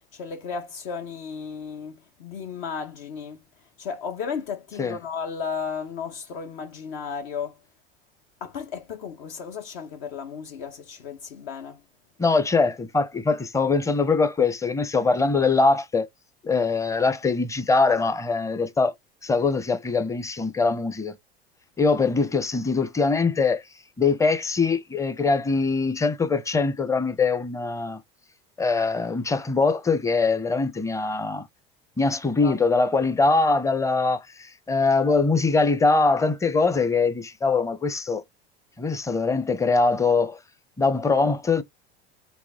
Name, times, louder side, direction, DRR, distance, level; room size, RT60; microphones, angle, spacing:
voice 1, 0.1-3.4 3.8-7.6 8.4-11.8 32.4-32.6, left 6 dB, 65° left, 1.0 m, -34 dB
voice 2, 12.2-16.1 16.4-18.9 19.2-21.1 21.8-23.6 24.0-28.0 28.6-31.4 32.0-38.2 38.8-40.4 40.8-41.6, left 4 dB, 10° left, 0.6 m, -22 dB
4.1 x 2.8 x 3.6 m
hypercardioid pair, 85°, 29 cm